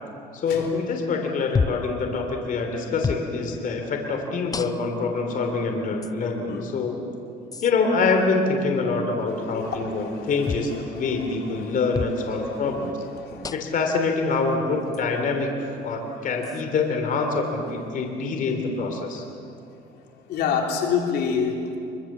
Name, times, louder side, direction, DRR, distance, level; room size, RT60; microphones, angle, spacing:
voice 1, 0.3-7.0 7.6-12.9 13.5-19.2, left 4 dB, 50° left, 3 dB, 3.1 m, -25 dB
sound 1, 1.6-1.9 3.0-3.3 4.5-5.0 6.0-6.1 7.5-7.7 10.5-10.7 11.9-12.2 13.4-13.8 14.9-15.0 16.4-16.6, left 5 dB, 20° left, 0.6 m, -29 dB
voice 2, 9.3-13.7 15.6-15.8 16.0-16.3 17.6-17.7 20.3-21.8, left 6 dB, 75° left, 1 dB, 3.3 m, -30 dB
24.0 x 23.5 x 7.4 m, 2.6 s
cardioid pair, 110°, 17 cm